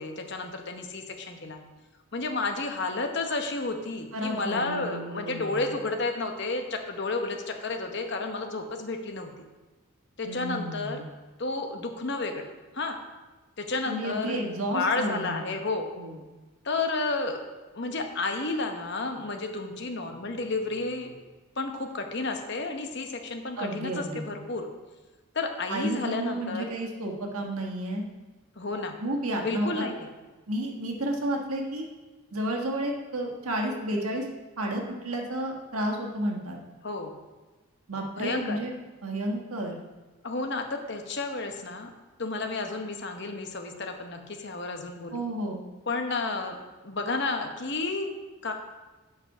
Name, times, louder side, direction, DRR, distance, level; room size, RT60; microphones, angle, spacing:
voice 1, 0.0-1.6 2.1-9.3 10.2-11.0 11.4-12.5 12.7-13.0 13.6-14.4 14.7-15.9 16.6-17.4 17.7-21.1 21.6-24.7 25.3-26.6 28.6-29.0 29.4-30.1 36.8-37.1 38.2-38.6 40.2-41.9 42.2-45.3 45.9-46.6 46.8-48.1 48.4-48.5, left 3 dB, 50° left, 4 dB, 0.9 m, -31 dB
voice 2, 4.1-5.7 10.2-11.0 13.8-15.6 16.0-16.2 23.6-24.3 25.7-28.0 29.0-29.8 30.5-31.9 32.3-34.2 34.6-36.6 37.9-38.7 39.0-39.8 45.1-45.6, right 1 dB, 85° right, 1 dB, 1.4 m, -31 dB
8.4 x 5.2 x 5.5 m, 1.2 s
head